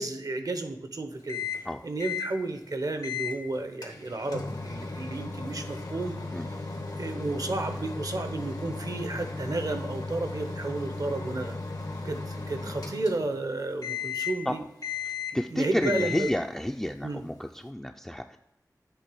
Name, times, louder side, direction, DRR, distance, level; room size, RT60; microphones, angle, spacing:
voice 1, 0.0-6.2 6.5-6.6 7.0-11.5 12.0-14.6 15.5-16.3 17.0-17.2, right 2 dB, 65° right, 7 dB, 0.8 m, -32 dB
Microwave oven, 1.3-1.7 2.0-2.3 3.0-3.4 3.8-13.5 13.8-14.5 14.8-15.5 15.8-16.5, left 4 dB, 85° left, 1.3 m, -35 dB
voice 2, 15.3-18.4, equal, 5° left, 3 dB, 0.4 m, -30 dB
8.0 x 3.4 x 6.1 m, 0.87 s
wide cardioid pair, 65°, 7 cm